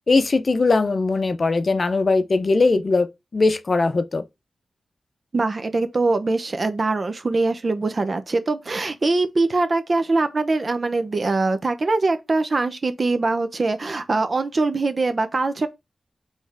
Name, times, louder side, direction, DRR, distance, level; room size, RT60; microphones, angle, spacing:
voice 1, 0.1-3.1 3.3-4.2, left 3 dB, 55° left, 0.6 m, -20 dB
voice 2, 5.3-15.7, right 3 dB, 50° right, 0.7 m, -22 dB
4.3 x 3.4 x 3.4 m
cardioid pair, 60°, 0 cm